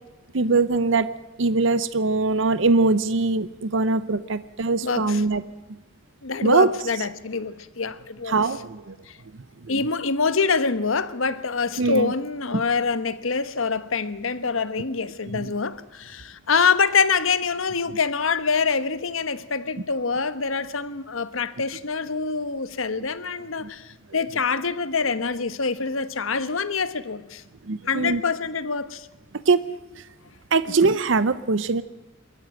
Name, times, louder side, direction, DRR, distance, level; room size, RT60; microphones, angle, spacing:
voice 1, 0.3-1.1 1.4-5.4 6.4-6.7 8.3-9.0 9.7-9.8 11.8-12.1 12.5-12.6 27.7-28.2 29.5-29.6 30.5-31.8, right 3 dB, 65° right, 0.7 m, -21 dB
voice 2, 4.8-5.3 6.2-8.6 9.7-27.4 27.9-29.1 30.7-31.0, left 5 dB, 85° left, 1.2 m, -25 dB
23.0 x 14.0 x 9.0 m
head